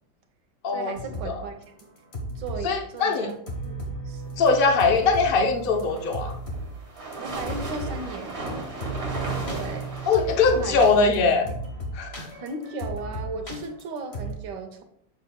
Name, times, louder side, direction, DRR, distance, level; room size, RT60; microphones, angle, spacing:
voice 1, 0.7-1.6 2.4-3.4 3.6-4.2 7.2-8.4 9.5-9.9 10.5-10.9 12.4-14.8, right 3 dB, 80° right, 6 dB, 1.5 m, -36 dB
sound 1, 1.0-1.4 1.6-2.7 3.0-3.1 3.5-6.7 7.0-8.0 8.3-8.5 8.8-14.3, right 1 dB, 40° left, 1.4 m, -35 dB
voice 2, 2.6-3.3 4.4-6.3 10.1-11.5 11.9-12.3, left 4 dB, 75° left, 4 dB, 0.5 m, -21 dB
sound 2, 5.7-10.8, right 2 dB, 35° right, 2.2 m, -35 dB
7.8 x 6.4 x 2.3 m, 0.66 s
omnidirectional pair, 1.9 m